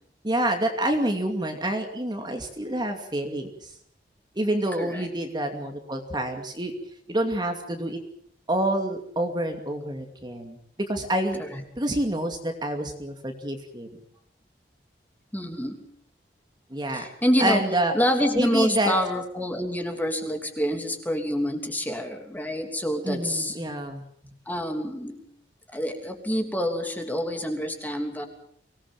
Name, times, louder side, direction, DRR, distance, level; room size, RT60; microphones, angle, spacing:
voice 1, 0.2-3.7 4.4-6.7 7.1-8.0 8.5-10.6 10.9-11.4 11.8-13.9 16.7-17.0 17.4-17.9 18.4-18.9 23.0-24.0, right 1 dB, 25° right, 4 dB, 2.5 m, -27 dB
voice 2, 15.3-15.8 16.9-17.6 17.9-23.6 24.5-25.2 25.7-28.2, equal, 10° left, 4 dB, 3.1 m, -27 dB
24.5 x 19.0 x 7.4 m, 0.66 s
head